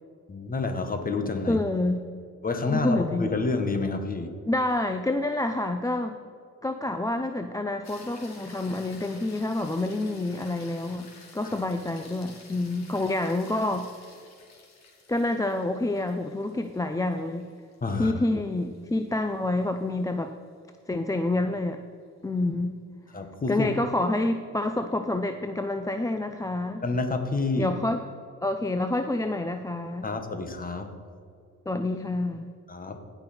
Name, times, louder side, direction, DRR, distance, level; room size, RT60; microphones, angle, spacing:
voice 1, 0.3-1.6 2.4-4.3 17.8-18.1 23.1-23.7 26.8-27.7 30.0-30.9 32.7-33.0, left 3 dB, 30° left, 6 dB, 1.4 m, -28 dB
voice 2, 1.5-2.0 2.7-3.3 4.5-6.2 6.6-13.9 15.1-17.5 18.0-20.3 20.9-21.8 22.2-22.8 23.5-26.8 27.6-28.0 28.4-30.1 31.7-32.5, left 2 dB, 10° left, 7 dB, 0.5 m, -28 dB
sound 1, 7.8-20.2 24.7-24.8, left 3 dB, 60° left, 2.6 m, -52 dB
16.0 x 5.9 x 4.3 m, 2.3 s
cardioid pair, 90°, 30 cm